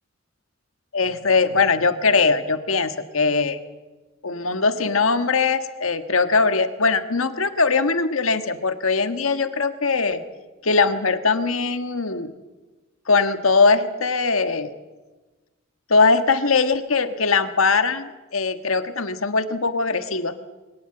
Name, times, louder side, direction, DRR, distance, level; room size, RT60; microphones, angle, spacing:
voice 1, 0.9-3.6 4.2-10.2 10.6-12.3 13.1-14.7 15.9-20.3, left 4 dB, 75° left, 9 dB, 1.5 m, -21 dB
22.5 x 19.0 x 7.8 m, 1.2 s
head